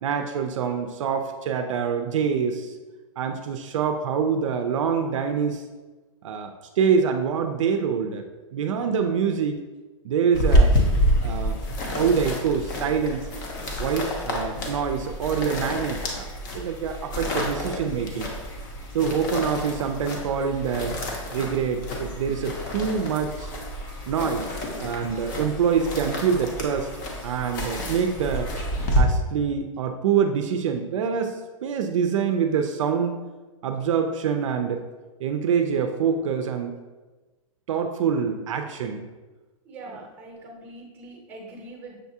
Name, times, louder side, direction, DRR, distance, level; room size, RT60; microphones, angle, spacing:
voice 1, 0.0-2.7 3.2-5.6 6.2-9.6 10.0-10.8 11.2-11.6 11.9-13.3 13.8-16.3 16.5-18.3 18.9-21.0 21.3-23.5 24.1-26.9 27.2-28.5 29.0-33.2 33.6-34.8 35.2-36.8 37.7-39.0 39.9-40.0, right 6 dB, 65° right, 6 dB, 0.4 m, -25 dB
sound 1, 10.3-29.0, equal, 35° left, 0.7 m, -28 dB
voice 2, 39.6-42.0, right 2 dB, 10° right, 0 dB, 0.7 m, -42 dB
6.4 x 2.3 x 2.7 m, 1.2 s
hypercardioid pair, 165°, 17 cm